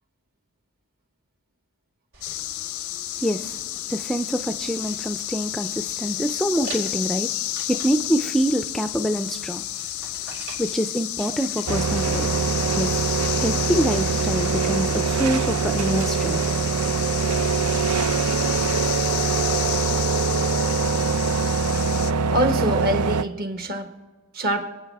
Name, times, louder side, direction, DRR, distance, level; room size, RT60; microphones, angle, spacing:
sound 1, 2.1-16.3, right 3 dB, 65° right, 4.6 m, -46 dB
sound 2, 2.2-22.1, left 14 dB, 65° left, 0.5 m, -31 dB
voice 1, 3.2-3.6 3.9-7.3 7.7-9.6 10.6-12.3 12.7-16.4, equal, ahead, 7 dB, 0.4 m, -26 dB
sound 3, 11.7-23.2, right 5 dB, 80° right, 0.6 m, -23 dB
voice 2, 22.3-23.9 24.3-24.7, right 1 dB, 45° right, 5 dB, 1.4 m, -25 dB
26.0 x 9.3 x 3.5 m, 1.3 s
head